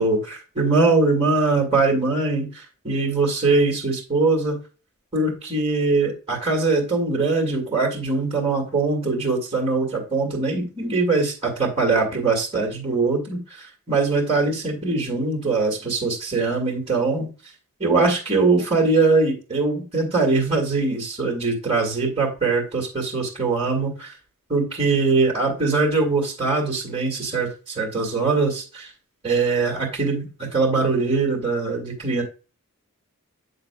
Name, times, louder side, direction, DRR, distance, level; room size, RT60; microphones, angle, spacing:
voice 1, 0.0-4.6 5.1-17.3 17.8-24.1 24.5-28.9 29.2-30.3 30.5-32.2, right 3 dB, 25° right, -1 dB, 2.1 m, -22 dB
7.8 x 6.5 x 2.3 m, 0.33 s
head